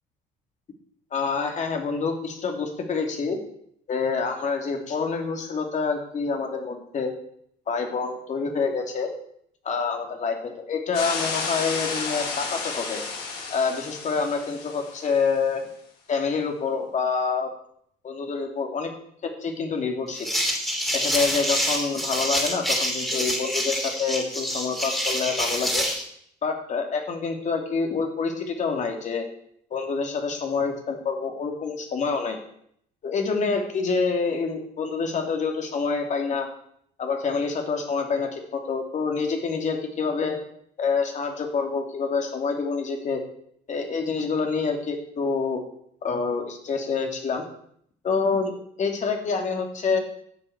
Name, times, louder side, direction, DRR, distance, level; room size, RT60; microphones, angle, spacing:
voice 1, 1.1-3.4 3.9-7.1 7.7-9.1 9.6-13.0 13.5-15.6 16.1-17.5 18.0-18.9 19.2-20.3 20.9-25.9 26.4-29.2 29.7-32.4 33.0-36.5 37.0-40.4 40.8-43.2 43.7-45.6 46.0-47.4 48.0-50.0, left 5 dB, 45° left, 3 dB, 2.9 m, -27 dB
sound 1, 10.9-15.2, left 4 dB, 70° left, 5.7 m, -32 dB
sound 2, 20.1-26.0, equal, ahead, 3.1 m, -26 dB
11.5 x 7.8 x 7.2 m, 0.68 s
cardioid pair, 110°, 17 cm